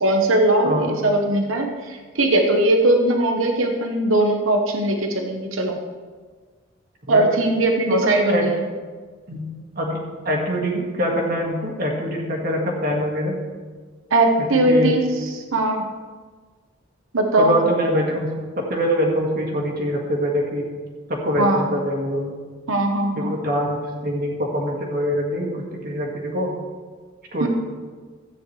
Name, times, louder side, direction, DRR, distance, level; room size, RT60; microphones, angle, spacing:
voice 1, 0.0-5.8 7.1-8.7 14.1-15.9 17.1-17.6 21.4-21.7 22.7-23.4 27.4-27.5, right 1 dB, 90° right, 3 dB, 1.0 m, -20 dB
voice 2, 7.9-8.5 9.3-9.5 9.8-10.0 10.3-13.3 14.5-14.9 17.4-20.6 21.1-22.3 23.2-26.5 27.3-27.5, equal, 45° right, -1 dB, 1.9 m, -24 dB
13.5 x 9.1 x 3.2 m, 1.5 s
head